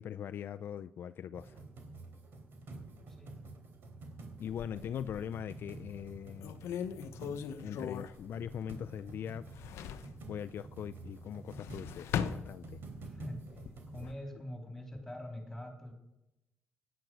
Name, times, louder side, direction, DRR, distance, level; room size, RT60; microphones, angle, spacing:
voice 1, 0.0-1.6 4.4-6.5 7.6-9.5 10.3-12.8 14.0-14.1, left 9 dB, 55° left, 11 dB, 0.4 m, -41 dB
sound 1, 1.3-14.1, right 3 dB, 55° right, 3.2 m, -49 dB
sound 2, 4.5-5.4 6.0-6.1 6.4-9.1 9.3-10.2 11.3-13.1 13.5-14.2, left 8 dB, 85° left, 0.9 m, -39 dB
voice 2, 13.0-13.5 13.9-15.9, left 1 dB, 10° left, 3 dB, 3.5 m, -44 dB
17.0 x 10.5 x 6.2 m, 0.89 s
cardioid pair, 135°, 4 cm